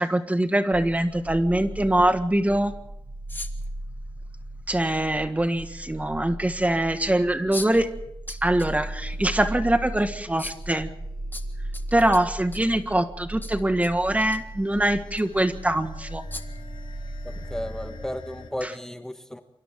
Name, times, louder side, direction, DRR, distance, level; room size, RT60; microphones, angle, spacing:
voice 1, 0.0-2.7 4.7-7.9 8.3-10.9 11.9-16.2 18.6-18.7, right 1 dB, 15° right, 8 dB, 1.7 m, -23 dB
sound 1, 0.7-18.1, right 1 dB, 50° right, 2.6 m, -37 dB
sound 2, 3.3-3.7 5.2-5.3 7.5-7.8 8.3-8.7 9.1-9.2 10.4-10.7 11.3-12.8 13.4-13.9 14.2-14.4 15.1-15.2 16.3-16.6, left 2 dB, 20° left, 1.9 m, -38 dB
sound 3, 8.6-18.5, left 3 dB, 80° left, 3.5 m, -48 dB
voice 2, 17.2-19.4, left 1 dB, 5° left, 6 dB, 1.4 m, -34 dB
29.0 x 24.5 x 3.7 m, 0.77 s
wide cardioid pair, 90°, 9 cm